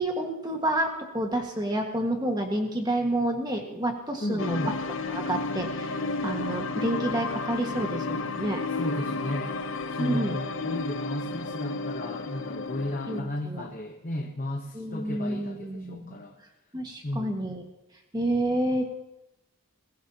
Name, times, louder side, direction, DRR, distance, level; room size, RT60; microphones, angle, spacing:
voice 1, 0.0-4.7 5.1-6.0 6.2-8.6 10.0-10.4 13.1-13.6 14.7-16.2 16.7-17.6 18.1-18.9, right 1 dB, 20° right, 2 dB, 1.6 m, -29 dB
voice 2, 4.2-4.8 8.7-9.5 9.9-16.4 17.0-17.5, left 1 dB, 35° left, 1 dB, 1.0 m, -34 dB
sound 1, 4.4-13.2, left 3 dB, 60° left, 0.6 m, -32 dB
21.5 x 15.0 x 2.9 m, 0.96 s
head